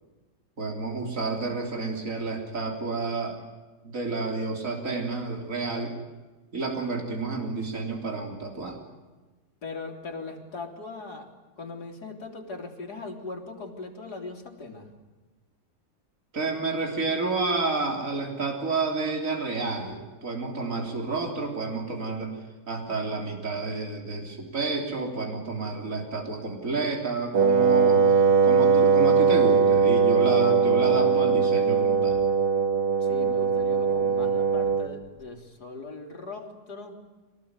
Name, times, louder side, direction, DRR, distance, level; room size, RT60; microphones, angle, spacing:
voice 1, 0.6-3.4 3.8-5.9 6.5-8.8 16.3-22.3 22.7-28.0 28.4-32.2, right 3 dB, 50° right, 2 dB, 3.8 m, -30 dB
voice 2, 9.6-11.3 11.6-14.9 33.0-37.0, left 3 dB, 70° left, 1 dB, 3.8 m, -39 dB
Wind instrument woodwind instrument, 27.3-35.0, right 5 dB, 70° right, 2.0 m, -21 dB
26.0 x 19.0 x 9.7 m, 1.3 s
omnidirectional pair, 1.8 m